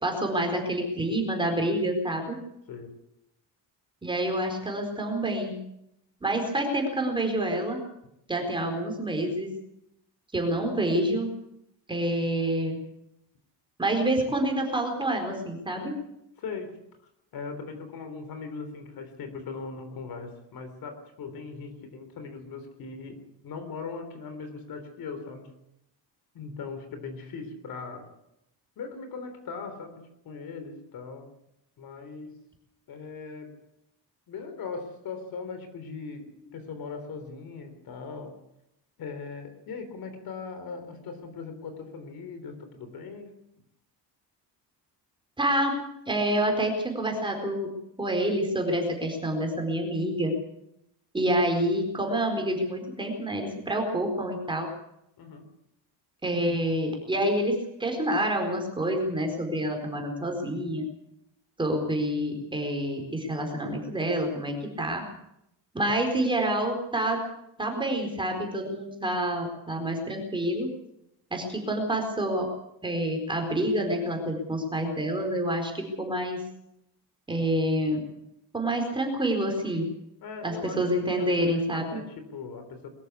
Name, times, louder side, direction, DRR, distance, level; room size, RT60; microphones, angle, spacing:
voice 1, 0.0-2.4 4.0-5.6 6.2-7.8 8.3-9.5 10.3-11.3 11.9-12.8 13.8-15.9 45.4-45.8 46.1-47.7 48.0-50.3 51.1-54.7 56.2-60.8 61.6-65.0 65.7-67.2 67.6-70.7 71.3-72.5 72.8-76.4 77.3-78.0 78.5-79.9 80.4-81.9, right 1 dB, 10° right, 3 dB, 4.3 m, -27 dB
voice 2, 2.7-3.0 16.4-16.8 17.3-25.6 26.3-28.1 28.8-31.3 31.8-32.4 32.9-33.6 34.3-38.4 39.0-43.4 55.2-55.5 80.2-82.9, left 4 dB, 55° left, 8 dB, 3.8 m, -39 dB
22.5 x 14.0 x 8.4 m, 0.80 s
cardioid pair, 165°, 42 cm